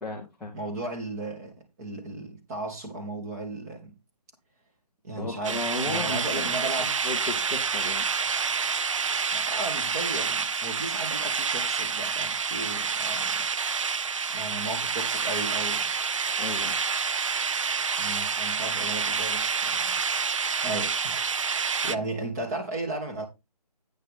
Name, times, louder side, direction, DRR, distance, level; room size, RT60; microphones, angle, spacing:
voice 1, 0.0-0.5 5.2-6.5 6.8-8.1 16.4-16.7, left 3 dB, ahead, 0.5 m, -34 dB
voice 2, 0.5-3.9 5.0-6.9 9.3-13.5 14.3-15.9 18.0-20.0 20.6-21.3 21.6-23.3, right 2 dB, 25° right, 2.6 m, -35 dB
sound 1, 5.4-22.0, right 5 dB, 50° right, 0.5 m, -28 dB
9.4 x 5.5 x 5.2 m
figure-of-eight pair, 160°, 21 cm